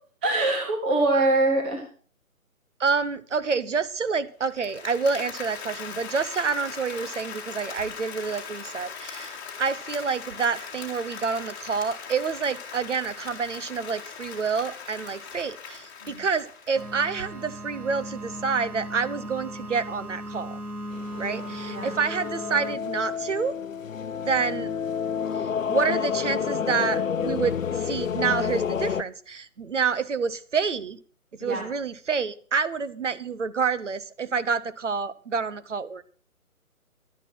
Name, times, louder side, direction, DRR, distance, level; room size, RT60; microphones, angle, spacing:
voice 1, 0.2-1.8 16.0-16.2 21.1-21.4 21.7-21.9 31.4-31.6, right 2 dB, 5° right, 0.8 m, -24 dB
voice 2, 2.8-20.6 21.2-23.6 24.2-24.7 25.3-31.0 31.4-36.0, right 5 dB, 55° right, 0.9 m, -28 dB
Applause, 4.5-17.5, left 6 dB, 15° left, 1.9 m, -40 dB
sound 1, 16.7-22.8, equal, 85° right, 1.7 m, -37 dB
sound 2, 20.9-29.0, left 7 dB, 60° left, 0.7 m, -29 dB
11.5 x 10.0 x 6.1 m
figure-of-eight pair, 150°, 44 cm